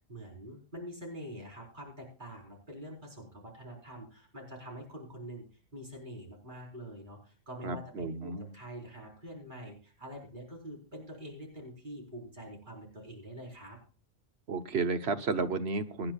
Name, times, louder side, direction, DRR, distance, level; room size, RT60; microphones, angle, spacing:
voice 1, 0.1-5.4 5.7-13.8, equal, 50° right, -1 dB, 4.5 m, -45 dB
voice 2, 7.6-8.5 14.5-16.1, right 4 dB, 90° right, 9 dB, 1.3 m, -32 dB
24.0 x 9.9 x 2.4 m, 0.37 s
omnidirectional pair, 1.1 m